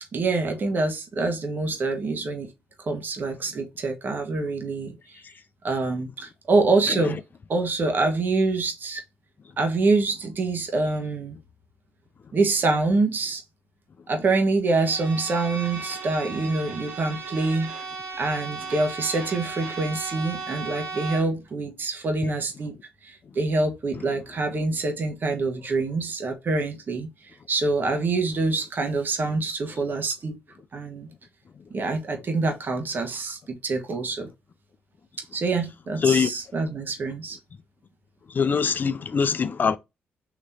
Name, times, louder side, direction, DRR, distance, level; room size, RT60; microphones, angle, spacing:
voice 1, 0.1-2.5 2.8-5.2 5.6-7.2 7.5-9.0 9.6-11.4 12.3-13.4 14.1-17.7 18.2-22.7 23.0-27.1 27.5-30.4 30.7-31.1 31.7-34.3 35.3-37.4, right 3 dB, 50° right, 1.4 m, -25 dB
Bowed string instrument, 14.7-21.4, right 4 dB, 85° right, 1.7 m, -36 dB
voice 2, 38.3-39.8, left 6 dB, 45° left, 0.6 m, -22 dB
4.1 x 3.1 x 4.2 m
cardioid pair, 75°, 4 cm